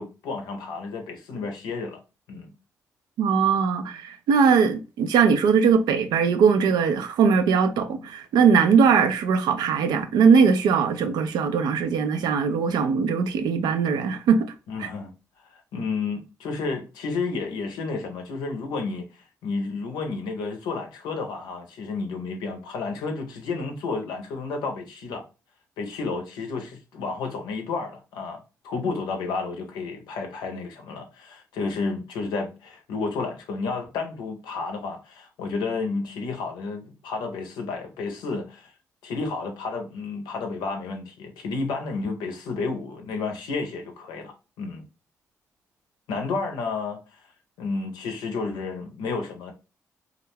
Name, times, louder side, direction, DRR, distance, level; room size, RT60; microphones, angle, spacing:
voice 1, 0.0-2.0 2.3-2.5 14.7-15.1 15.5-25.2 25.8-38.7 39.0-44.9 46.1-47.2 47.6-49.5, left 4 dB, 85° left, 0.6 m, -31 dB
voice 2, 3.2-14.5 14.8-14.9, right 6 dB, 80° right, 0.4 m, -20 dB
2.4 x 2.1 x 3.2 m
supercardioid pair, 45°, 7 cm